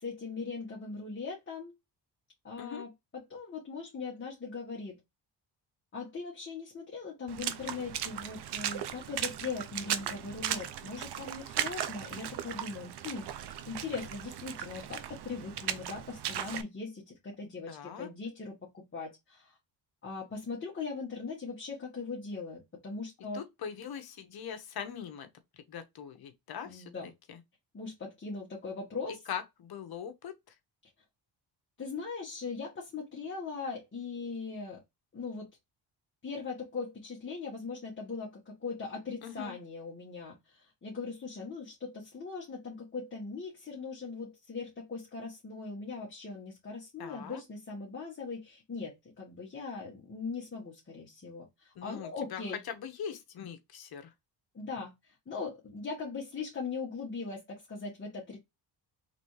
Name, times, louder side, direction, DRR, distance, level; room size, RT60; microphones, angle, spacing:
voice 1, 0.0-1.7 2.4-5.0 5.9-19.6 20.0-23.4 26.6-27.1 27.7-29.2 31.8-34.8 35.1-35.5 36.2-52.6 54.5-58.4, left 4 dB, 25° left, 1.5 m, -40 dB
Water / Splash splatter, 7.3-16.6, right 10 dB, 65° right, 0.7 m, -37 dB
voice 2, 17.7-18.1 23.3-25.3 25.7-26.9 27.3-27.4 29.3-30.4 39.2-39.6 47.0-47.4 51.7-54.1, left 8 dB, 60° left, 1.1 m, -41 dB
4.0 x 3.5 x 3.2 m
cardioid pair, 120°, 42 cm